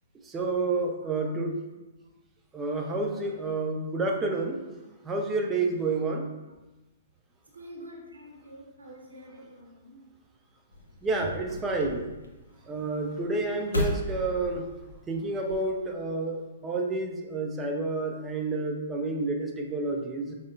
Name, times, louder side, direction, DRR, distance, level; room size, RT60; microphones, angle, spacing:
voice 1, 0.3-1.5 2.5-4.6 5.0-6.3 11.0-12.0 12.7-14.7 15.1-20.3, right 3 dB, 15° right, 0 dB, 0.5 m, -29 dB
voice 2, 1.0-1.3 7.5-10.0, equal, 80° right, -2 dB, 0.7 m, -47 dB
sound 1, 10.7-15.7, equal, 80° left, 0.6 m, -36 dB
5.0 x 2.1 x 2.5 m, 1.1 s
figure-of-eight pair, 115°, 0 cm